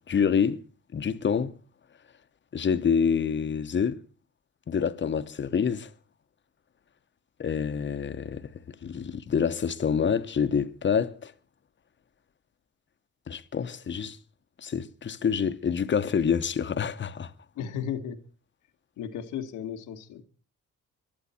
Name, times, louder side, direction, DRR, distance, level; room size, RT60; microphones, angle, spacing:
voice 1, 0.1-0.6 0.9-1.5 2.5-4.0 4.7-5.9 7.4-11.3 13.3-14.2 14.6-17.3, left 7 dB, 40° left, 1.0 m, -27 dB
voice 2, 17.5-18.2 19.0-20.2, left 8 dB, 85° left, 1.5 m, -34 dB
22.5 x 11.5 x 4.3 m
cardioid pair, 90°, 30 cm